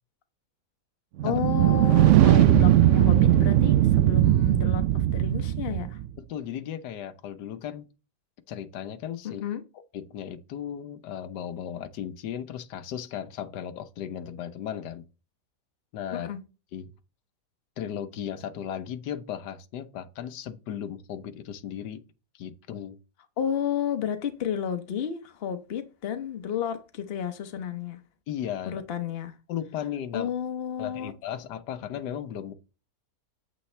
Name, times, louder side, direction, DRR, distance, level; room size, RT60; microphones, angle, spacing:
voice 1, 1.2-6.0 9.2-9.6 16.1-16.4 23.4-28.0 28.6-29.3 30.1-31.1, left 8 dB, 45° left, 1.0 m, -31 dB
sound 1, 1.2-6.1, right 13 dB, 75° right, 0.7 m, -19 dB
voice 2, 1.9-2.3 6.2-7.9 8.5-9.4 9.9-15.1 15.9-16.3 16.7-16.9 17.8-22.0 22.4-23.0 28.3-28.8 29.5-30.3 30.8-32.5, left 9 dB, 85° left, 1.4 m, -36 dB
8.4 x 8.0 x 3.3 m
omnidirectional pair, 1.8 m